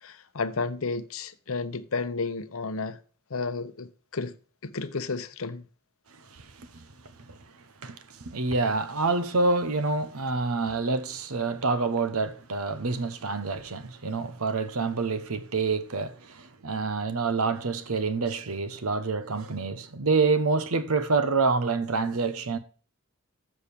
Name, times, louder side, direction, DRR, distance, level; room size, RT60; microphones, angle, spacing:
voice 1, 0.0-3.0 3.3-4.4 4.6-5.7, left 4 dB, 70° left, 0.8 m, -32 dB
voice 2, 6.3-6.8 7.3-7.4 7.8-22.6, right 4 dB, 85° right, 1.0 m, -27 dB
7.3 x 6.3 x 6.7 m
head